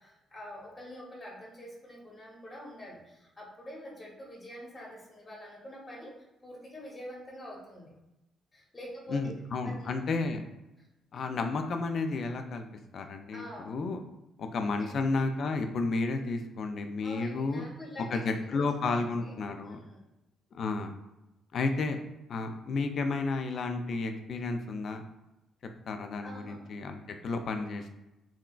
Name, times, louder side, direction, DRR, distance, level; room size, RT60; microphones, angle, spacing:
voice 1, 0.0-6.1 6.4-7.9 8.5-9.9 13.3-13.7 14.8-14.9 17.0-18.2 18.5-19.4 19.6-20.0 26.2-26.6, equal, 20° left, -3 dB, 1.0 m, -46 dB
voice 2, 9.1-10.4 11.1-12.6 12.9-14.0 14.4-17.6 18.1-19.8 20.5-20.9 21.5-22.0 22.3-25.0 25.9-27.9, left 3 dB, 60° left, 6 dB, 0.3 m, -32 dB
3.7 x 2.2 x 2.3 m, 0.95 s
cardioid pair, 90°, 0 cm